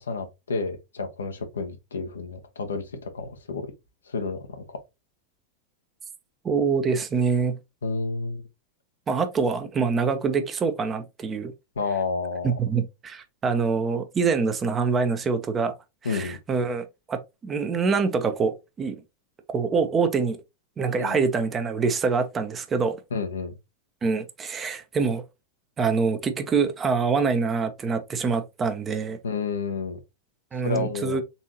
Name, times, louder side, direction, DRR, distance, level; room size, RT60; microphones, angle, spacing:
voice 1, 0.0-3.7 4.1-4.8 7.8-8.4 11.8-12.6 16.0-16.4 21.0-21.2 23.1-23.6 29.2-30.0 30.6-31.2, left 4 dB, 70° left, 0.9 m, -30 dB
voice 2, 6.4-7.5 9.1-11.5 12.4-15.7 16.1-19.0 19.5-20.4 20.8-23.0 24.0-25.2 25.8-29.2 30.5-31.2, right 5 dB, 20° right, 0.8 m, -25 dB
4.1 x 3.6 x 2.9 m
figure-of-eight pair, 90°, 0 cm